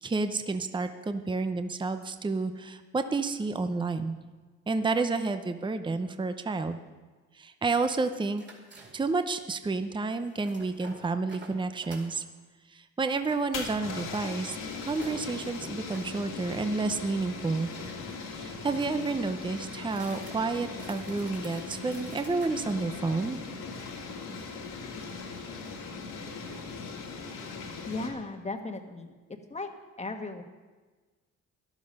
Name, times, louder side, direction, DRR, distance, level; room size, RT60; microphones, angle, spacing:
voice 1, 0.0-4.2 4.7-6.8 7.4-8.4 8.9-12.2 12.7-17.7 18.3-23.4, right 3 dB, 15° right, 9 dB, 0.7 m, -30 dB
sound 1, 8.4-9.3 10.2-12.2 13.5-16.1 17.4-18.6 19.8-22.5, right 2 dB, 35° right, 2.8 m, -50 dB
sound 2, 13.2-28.1, left 4 dB, 85° left, 2.4 m, -39 dB
voice 2, 27.8-29.1 29.5-29.7 30.0-30.4, left 3 dB, 20° left, 5 dB, 1.4 m, -36 dB
13.0 x 11.5 x 5.4 m, 1.3 s
cardioid pair, 90°, 30 cm